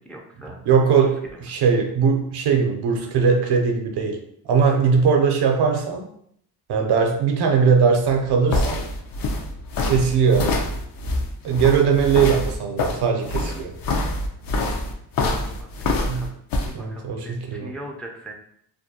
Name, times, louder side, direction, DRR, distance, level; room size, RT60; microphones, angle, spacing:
voice 1, 0.1-0.6 1.0-1.1 14.7-14.8 15.4-16.3 16.6-18.3, right 1 dB, 5° left, 1 dB, 0.3 m, -39 dB
voice 2, 0.6-4.2 4.5-6.1 6.7-8.9 9.8-10.5 11.4-13.7 16.1-16.3 16.7-17.7, right 6 dB, 75° right, 3 dB, 0.6 m, -20 dB
sound 1, 8.1-16.7, left 2 dB, 60° left, 0.5 m, -25 dB
2.5 x 2.2 x 2.8 m, 0.69 s
cardioid pair, 80°, 40 cm